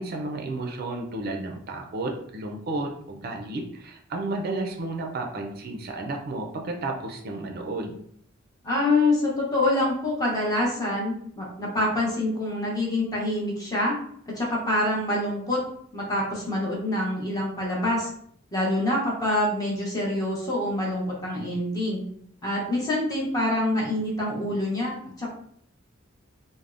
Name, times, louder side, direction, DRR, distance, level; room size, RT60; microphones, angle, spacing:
voice 1, 0.0-7.9, right 2 dB, 50° right, 2 dB, 0.4 m, -32 dB
voice 2, 8.6-13.9 14.3-15.6 15.9-18.1 18.5-22.0 22.4-25.3, left 1 dB, 20° left, -4 dB, 0.8 m, -26 dB
3.4 x 2.0 x 2.4 m, 0.67 s
head